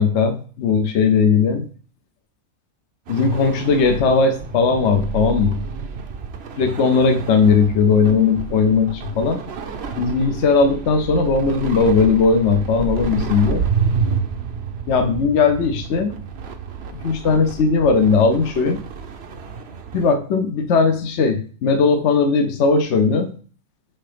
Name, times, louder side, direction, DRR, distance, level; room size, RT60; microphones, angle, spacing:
voice 1, 0.0-1.6 3.1-5.6 6.6-9.4 10.0-13.7 14.9-16.1 16.9-18.8 19.9-23.3, left 5 dB, 60° left, 7 dB, 0.9 m, -18 dB
sound 1, 3.1-20.1, right 6 dB, 55° right, 0.8 m, -29 dB
7.7 x 2.9 x 5.0 m, 0.42 s
omnidirectional pair, 1.5 m